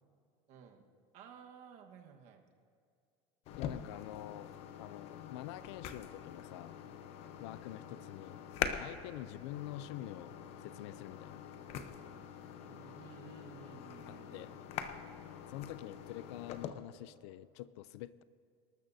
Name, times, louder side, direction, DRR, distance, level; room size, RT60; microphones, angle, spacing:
voice 1, 0.5-0.8 1.1-2.4 12.5-14.7, right 7 dB, 55° right, 3 dB, 1.4 m, -55 dB
voice 2, 3.5-6.7 7.4-10.3 10.6-11.4 14.1-14.5 15.5-18.2, left 14 dB, 85° left, 16 dB, 0.4 m, -47 dB
sound 1, 3.5-16.7, left 8 dB, 45° left, 0.8 m, -44 dB
25.0 x 13.0 x 2.7 m, 2.4 s
cardioid pair, 150°, 14 cm